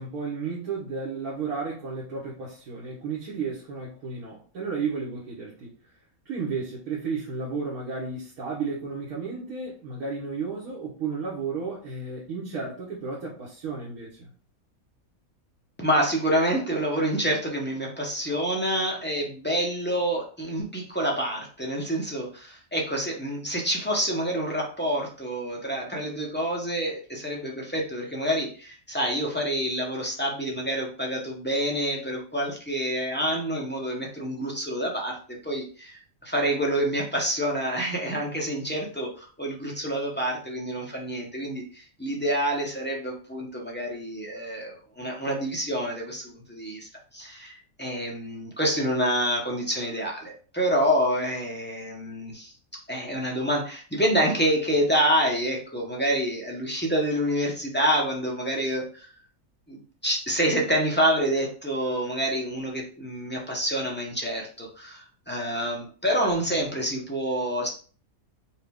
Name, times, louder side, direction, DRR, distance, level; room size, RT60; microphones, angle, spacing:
voice 1, 0.0-5.7 6.3-14.3, right 5 dB, 85° right, -5 dB, 1.5 m, -33 dB
voice 2, 15.8-52.5 52.9-59.1 59.7-67.7, equal, 10° left, -2 dB, 0.7 m, -27 dB
4.5 x 2.3 x 3.5 m, 0.40 s
omnidirectional pair, 1.5 m